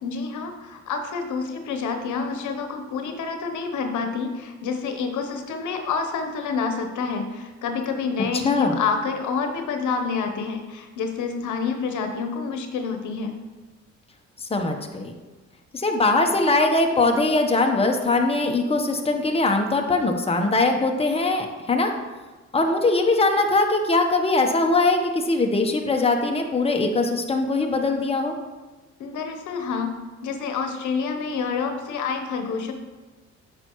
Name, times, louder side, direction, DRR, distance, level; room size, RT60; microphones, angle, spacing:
voice 1, 0.0-13.3 29.0-29.9 30.2-32.7, left 5 dB, 75° left, 5 dB, 1.0 m, -28 dB
voice 2, 8.4-8.8 14.4-15.1 15.7-21.9 22.5-28.3, left 2 dB, 20° left, 3 dB, 1.0 m, -21 dB
8.8 x 6.7 x 3.1 m, 1.2 s
cardioid pair, 90°, 30 cm